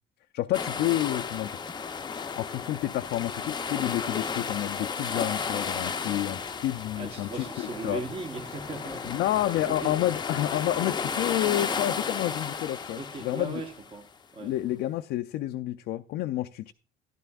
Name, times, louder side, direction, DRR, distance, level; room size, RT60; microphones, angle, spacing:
voice 1, 0.3-1.6 2.4-8.0 9.1-13.6 14.4-16.7, left 14 dB, 80° left, 0.4 m, -29 dB
sound 1, 0.5-14.0, left 5 dB, 25° left, 0.6 m, -34 dB
voice 2, 6.9-10.0 12.9-14.0 14.3-14.5, right 3 dB, 35° right, 1.1 m, -38 dB
12.5 x 11.0 x 2.3 m
cardioid pair, 110°, 17 cm